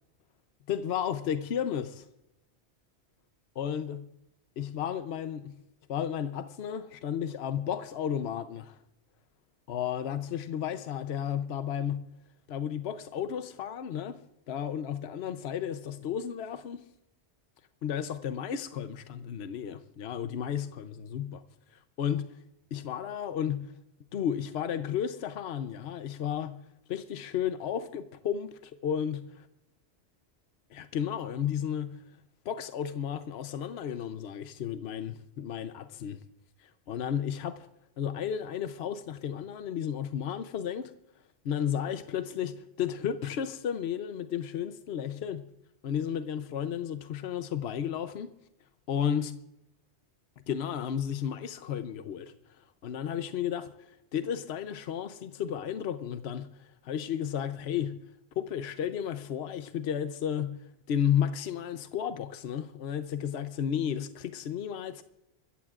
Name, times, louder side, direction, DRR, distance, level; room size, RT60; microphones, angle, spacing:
voice 1, 0.7-2.1 3.6-4.0 4.6-5.5 5.9-8.8 9.7-12.0 12.5-14.2 14.5-16.8 17.8-21.4 22.0-22.3 22.7-23.7 24.1-26.6 26.9-29.5 30.7-32.0 32.4-36.2 36.9-37.7 38.0-40.9 41.4-45.4 45.8-48.3 48.9-49.3 50.5-52.3 52.8-53.7 54.1-56.5 56.8-58.0 58.4-60.6 60.9-65.0, left 9 dB, 70° left, 1.0 m, -33 dB
25.5 x 14.5 x 2.4 m
omnidirectional pair, 1.1 m